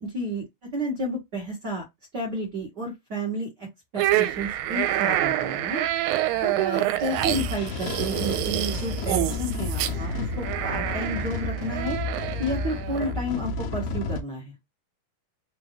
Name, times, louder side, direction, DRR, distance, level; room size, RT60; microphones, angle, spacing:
voice 1, 0.0-0.4 0.7-1.8 2.1-3.7 3.9-5.8 6.4-14.5, right 1 dB, 60° right, 1.1 m, -31 dB
sound 1, 4.0-13.1, right 14 dB, 80° right, 2.3 m, -27 dB
sound 2, 7.1-14.2, left 3 dB, 75° left, 1.8 m, -31 dB
6.0 x 2.6 x 3.0 m
omnidirectional pair, 4.2 m